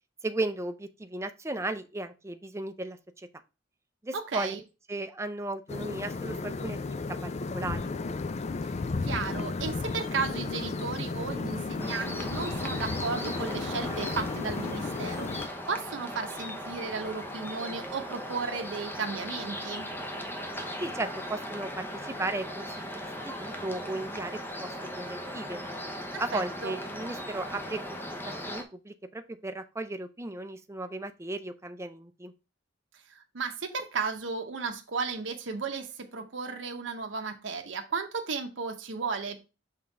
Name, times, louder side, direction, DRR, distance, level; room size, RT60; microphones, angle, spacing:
voice 1, 0.2-3.3 4.0-4.6 4.9-7.9 20.8-23.0 23.2-25.6 26.2-28.0 28.5-32.3, right 2 dB, 15° right, 0.5 m, -35 dB
voice 2, 4.1-4.6 9.0-19.9 26.1-26.7 33.1-39.4, right 4 dB, 85° right, 0.8 m, -34 dB
sound 1, 5.7-15.5, left 3 dB, 35° left, 0.4 m, -34 dB
sound 2, 11.8-28.6, equal, 10° left, 0.8 m, -38 dB
5.8 x 3.7 x 4.4 m
head